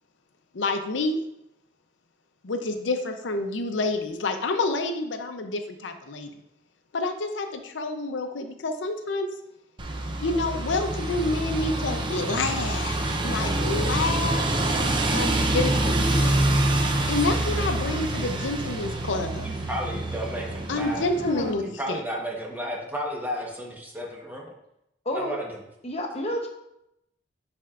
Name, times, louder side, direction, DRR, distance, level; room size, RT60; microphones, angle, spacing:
voice 1, 0.5-1.2 2.4-6.3 6.9-9.3 10.2-14.5 15.1-16.5 17.1-19.5 20.7-22.0, left 2 dB, 90° left, 7 dB, 0.6 m, -28 dB
sound 1, 9.8-21.5, right 1 dB, 25° right, 0.6 m, -26 dB
voice 2, 19.2-21.1 21.6-24.5 25.1-25.6, equal, 10° right, -1 dB, 1.1 m, -33 dB
voice 3, 21.2-21.6 25.1-25.4 25.8-26.5, left 1 dB, 35° left, 3 dB, 0.9 m, -30 dB
10.0 x 4.4 x 2.5 m, 0.82 s
head